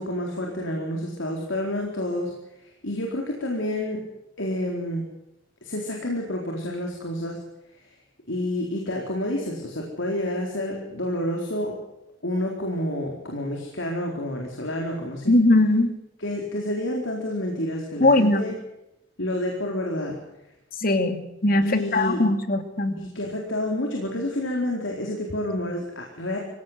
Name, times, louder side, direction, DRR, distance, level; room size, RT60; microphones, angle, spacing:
voice 1, 0.0-2.3 2.6-4.0 4.4-5.0 5.6-7.4 7.8-7.9 8.3-11.8 12.2-15.3 16.2-18.5 19.2-20.2 21.6-22.2 23.0-26.4, left 1 dB, 85° left, 0 dB, 4.1 m, -29 dB
voice 2, 15.3-15.9 18.0-18.5 20.8-23.0, left 2 dB, 50° left, 8 dB, 2.5 m, -20 dB
24.5 x 17.0 x 8.1 m, 0.89 s
head